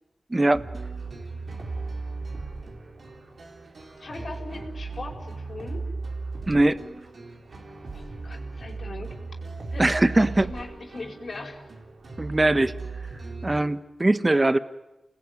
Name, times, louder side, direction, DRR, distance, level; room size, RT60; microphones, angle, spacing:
voice 1, 0.3-0.6 6.5-6.8 9.8-10.5 12.2-12.8 13.4-14.6, right 2 dB, 30° right, 12 dB, 1.4 m, -21 dB
sound 1, 0.5-13.6, right 3 dB, 70° right, 4.3 m, -37 dB
voice 2, 4.0-5.8 7.9-9.1 9.7-11.6, left 3 dB, 65° left, 3 dB, 4.9 m, -39 dB
28.5 x 20.0 x 9.7 m, 1.0 s
cardioid pair, 45°, 0 cm